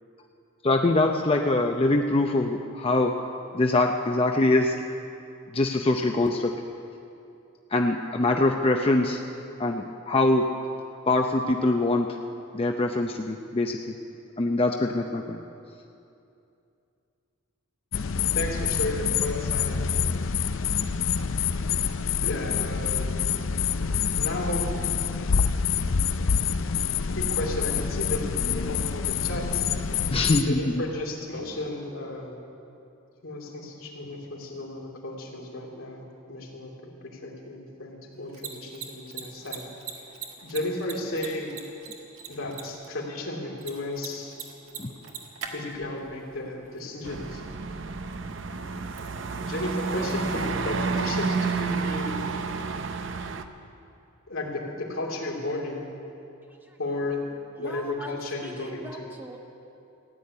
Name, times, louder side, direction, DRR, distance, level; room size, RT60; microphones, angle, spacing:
voice 1, 0.6-3.1 3.5-4.7 5.5-6.5 7.7-9.2 9.6-10.5 11.1-12.1 12.5-13.9 14.4-15.4 30.1-30.8 44.8-44.9, left 2 dB, 30° left, 3 dB, 0.6 m, -23 dB
sound 1, 17.9-30.4, left 6 dB, 75° left, 0.5 m, -26 dB
voice 2, 18.3-19.8 22.2-23.1 24.2-24.7 27.1-29.6 30.4-32.4 33.2-39.6 40.4-41.5 42.3-44.4 45.5-47.4 49.4-52.2 54.3-55.8 56.8-59.0, left 1 dB, 90° left, -2 dB, 2.9 m, -33 dB
Mechanisms, 38.1-51.7, right 6 dB, 80° right, 1.7 m, -45 dB
sound 2, 47.0-53.4, right 4 dB, 60° right, 0.7 m, -30 dB
voice 3, 56.4-56.8 57.6-59.4, right 1 dB, 10° right, 1 dB, 1.2 m, -41 dB
15.5 x 8.6 x 9.7 m, 2.6 s
head